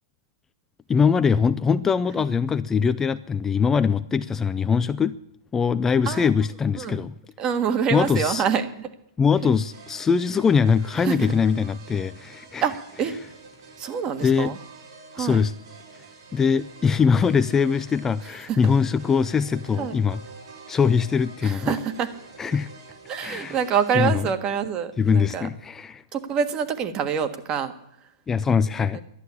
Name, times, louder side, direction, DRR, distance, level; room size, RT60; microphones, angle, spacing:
voice 1, 0.9-5.2 5.5-7.1 7.9-8.4 9.2-12.7 14.2-14.5 15.2-15.5 16.3-20.2 20.7-21.8 22.4-22.7 23.2-23.6 23.9-24.3 25.0-26.0 28.3-29.0, left 6 dB, 15° left, 0.5 m, -22 dB
voice 2, 7.4-8.9 9.4-9.5 11.0-11.3 12.6-13.2 13.8-14.6 15.1-15.4 18.5-18.6 19.8-20.0 21.4-22.1 23.1-25.5 26.1-27.7 28.9-29.0, right 7 dB, 30° right, 1.6 m, -26 dB
sound 1, 9.5-24.1, right 4 dB, 65° right, 6.7 m, -47 dB
11.5 x 11.5 x 8.5 m
hypercardioid pair, 120°, 3 cm